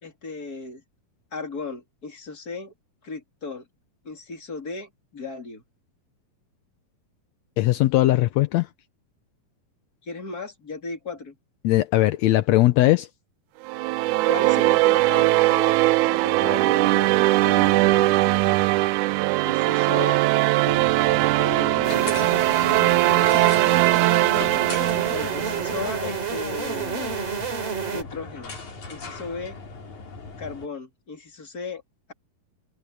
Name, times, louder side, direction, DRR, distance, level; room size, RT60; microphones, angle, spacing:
voice 1, 0.0-0.8 1.3-2.7 3.0-3.6 4.0-5.6 10.0-11.4 14.3-15.8 16.1-18.6 19.4-20.2 21.1-22.2 22.7-23.7 25.1-27.4 27.9-28.6 28.9-29.6 30.4-31.8, left 3 dB, 25° left, 3.4 m, -36 dB
voice 2, 7.6-8.7 11.6-13.1, left 16 dB, 75° left, 1.6 m, -19 dB
sound 1, 13.7-26.1, right 19 dB, 85° right, 1.7 m, -20 dB
sound 2, 20.6-30.7, left 4 dB, 55° left, 5.8 m, -39 dB
sound 3, 21.8-28.0, right 5 dB, 45° right, 4.3 m, -29 dB
omnidirectional pair, 4.0 m